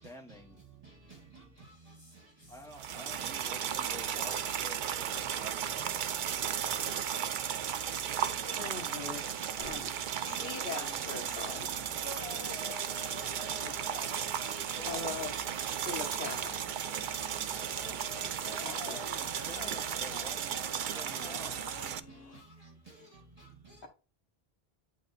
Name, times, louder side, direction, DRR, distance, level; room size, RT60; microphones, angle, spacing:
voice 1, 0.0-0.6 2.5-6.0 14.7-15.1 18.6-21.7, left 1 dB, 5° left, 1.3 m, -49 dB
voice 2, 0.7-3.6 5.0-10.5 11.4-13.3 13.8-14.4 16.8-18.7 20.8-21.0 21.5-23.9, right 3 dB, 35° right, 1.7 m, -55 dB
sound 1, 2.7-22.0, right 8 dB, 60° right, 0.6 m, -35 dB
sound 2, 8.1-9.9 10.2-22.4, left 5 dB, 80° left, 1.0 m, -50 dB
voice 3, 8.6-9.2 9.6-9.9 10.2-11.7 13.6-13.7 14.8-15.3 15.7-16.5 18.4-19.0, left 5 dB, 60° left, 1.3 m, -41 dB
8.6 x 3.6 x 4.1 m
omnidirectional pair, 1.0 m